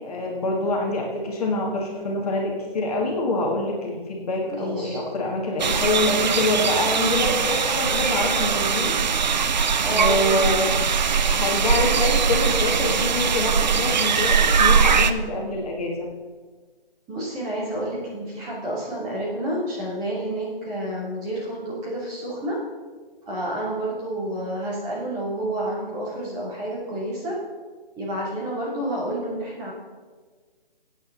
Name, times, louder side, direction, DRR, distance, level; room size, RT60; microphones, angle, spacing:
voice 1, 0.0-9.0 9.2-9.3 9.9-10.7 11.3-16.1, left 2 dB, 40° left, -1 dB, 1.9 m, -25 dB
voice 2, 4.5-5.0 9.8-10.7 17.1-22.6 23.3-27.3 28.0-29.7, right 1 dB, 15° right, -7 dB, 2.8 m, -29 dB
sound 1, 5.6-15.1, right 6 dB, 45° right, 0.6 m, -21 dB
16.0 x 8.7 x 4.0 m, 1.5 s
figure-of-eight pair, 160°, 30 cm